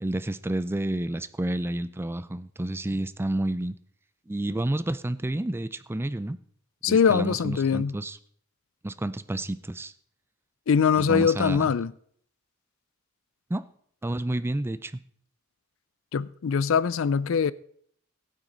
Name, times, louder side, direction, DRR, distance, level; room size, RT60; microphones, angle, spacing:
voice 1, 0.0-3.8 4.3-6.4 6.8-8.2 8.8-9.9 11.0-11.7 13.5-13.7 14.0-14.9, right 1 dB, 10° right, 0.4 m, -30 dB
voice 2, 6.8-7.9 10.7-11.9 16.1-17.5, left 6 dB, 65° left, 0.4 m, -22 dB
15.5 x 9.1 x 3.9 m
head